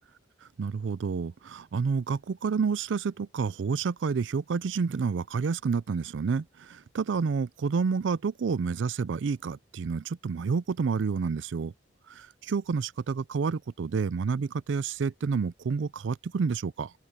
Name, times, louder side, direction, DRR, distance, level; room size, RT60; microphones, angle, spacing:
voice 1, 0.6-11.7 12.1-16.9, right 5 dB, 75° right, 0.4 m, -29 dB
head